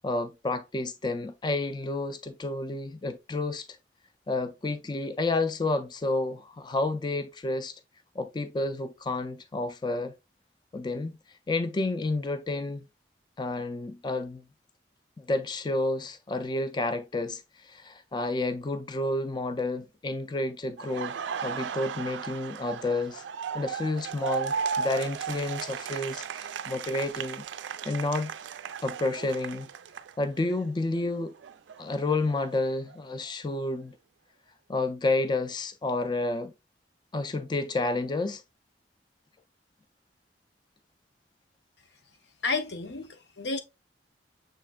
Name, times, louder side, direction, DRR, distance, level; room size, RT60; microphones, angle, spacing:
voice 1, 0.0-3.7 4.3-7.7 8.2-10.1 10.7-11.2 11.5-12.9 13.4-14.4 15.2-21.2 21.4-23.2 23.5-27.4 27.9-28.3 28.8-29.7 30.2-31.3 31.8-34.0 34.7-36.5 37.1-38.4, left 2 dB, 25° left, 0.4 m, -30 dB
Laughter, 20.8-30.6 30.9-33.0, right 6 dB, 90° right, 0.4 m, -36 dB
voice 2, 42.4-43.6, left 3 dB, 70° left, 0.7 m, -31 dB
6.6 x 3.1 x 2.3 m
head